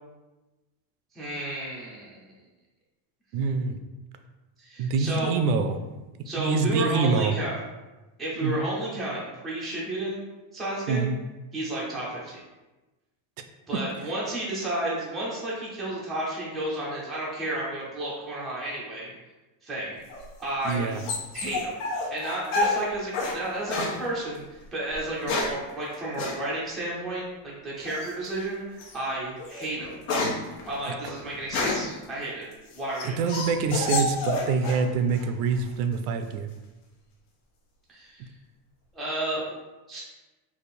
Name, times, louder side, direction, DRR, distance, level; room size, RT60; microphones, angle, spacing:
voice 1, 1.1-2.3 4.6-5.3 6.2-7.6 8.2-10.2 10.5-11.1 11.5-12.4 13.7-19.1 19.6-20.0 20.4-20.9 21.3-21.7 22.1-29.9 30.7-32.4 32.8-33.5 37.9-38.3 38.9-39.6 39.9-40.0, right 1 dB, ahead, -7 dB, 0.4 m, -32 dB
voice 2, 3.3-3.8 4.8-5.8 6.4-7.3 8.4-8.6 10.9-11.1 20.6-21.0 30.9-31.0 33.0-36.5, right 5 dB, 75° right, 8 dB, 0.5 m, -25 dB
sound 1, 20.1-23.4 23.7-24.0 24.9-25.6 26.2-26.4 27.9-28.3 28.8-29.0 29.4-32.0 32.5-34.9 35.1-35.7, left 2 dB, 65° left, 1.0 m, -29 dB
3.4 x 2.5 x 4.2 m, 1.1 s
cardioid pair, 170°, 45 cm